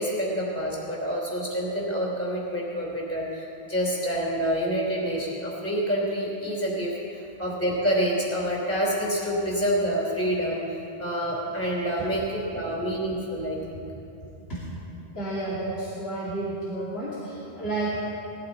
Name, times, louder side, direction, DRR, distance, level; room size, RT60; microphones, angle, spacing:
voice 1, 0.0-13.8, equal, 15° left, -3 dB, 3.2 m, -27 dB
voice 2, 15.1-18.0, right 2 dB, 75° left, -9 dB, 2.8 m, -31 dB
19.5 x 14.0 x 4.0 m, 2.9 s
omnidirectional pair, 1.0 m